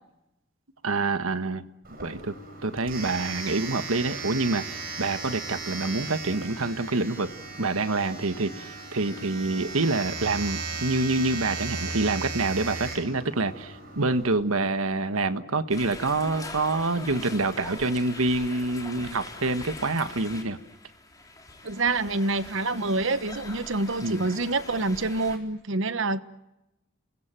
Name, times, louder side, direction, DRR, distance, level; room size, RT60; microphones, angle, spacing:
voice 1, 0.8-1.6 2.0-2.4 2.6-4.6 5.0-7.3 7.6-20.6 24.0-24.3, right 3 dB, 85° right, 1.5 m, -27 dB
Domestic sounds home sounds, 1.8-14.3, right 4 dB, 45° right, 7.0 m, -36 dB
sound 1, 15.7-25.4, left 2 dB, 15° left, 3.9 m, -42 dB
voice 2, 21.6-26.2, right 3 dB, 65° right, 1.2 m, -27 dB
29.5 x 21.0 x 9.1 m
head